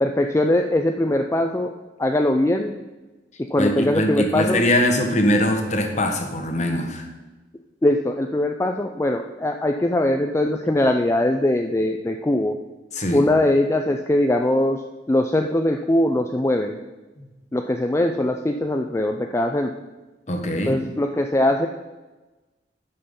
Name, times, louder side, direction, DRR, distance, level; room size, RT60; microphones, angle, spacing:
voice 1, 0.0-1.7 2.0-2.7 3.5-4.6 7.8-12.5 13.1-14.8 15.1-16.8 17.5-19.7 20.7-21.7, left 1 dB, 15° left, 4 dB, 0.4 m, -21 dB
voice 2, 3.3-7.1 12.9-13.3 17.2-17.3 20.3-20.8, left 1 dB, 40° left, 4 dB, 1.3 m, -22 dB
11.0 x 5.6 x 5.3 m, 1.1 s
head